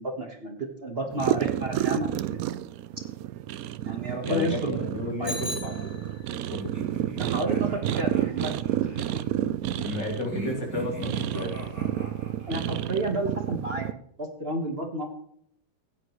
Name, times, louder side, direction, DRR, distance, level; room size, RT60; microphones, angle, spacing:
voice 1, 0.0-2.6 3.8-4.8 5.2-5.4 7.1-8.5 8.8-9.0 12.5-13.9 14.2-15.1, right 1 dB, 35° right, 3 dB, 1.3 m, -31 dB
sound 1, 1.1-13.9, right 12 dB, 80° right, 0.8 m, -30 dB
voice 2, 4.2-6.7 9.8-11.5, left 2 dB, 70° left, 1 dB, 3.1 m, -33 dB
Bicycle bell, 5.2-6.5, left 2 dB, 35° left, 1.7 m, -37 dB
sound 2, 6.6-9.3 10.2-12.8, equal, 10° right, 3.0 m, -41 dB
15.5 x 9.6 x 3.1 m, 0.69 s
omnidirectional pair, 2.0 m